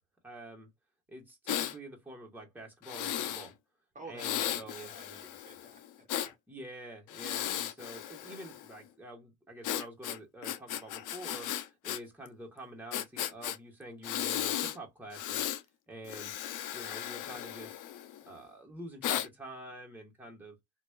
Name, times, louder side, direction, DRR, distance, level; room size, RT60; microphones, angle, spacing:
voice 1, 0.2-0.7 1.1-3.5 4.1-4.9 6.5-15.5 15.9-16.4 16.7-17.8 18.3-20.6, right 1 dB, 5° right, 1.3 m, -47 dB
Breathing, 1.5-1.7 2.8-3.5 4.2-6.3 7.1-8.7 9.6-12.0 12.3-12.4 12.9-13.6 14.0-14.8 15.1-15.6 16.0-18.2 19.0-19.3, left 11 dB, 90° left, 0.5 m, -35 dB
voice 2, 3.9-6.3, right 2 dB, 25° right, 1.1 m, -51 dB
2.9 x 2.4 x 2.3 m
cardioid pair, 90°, 30 cm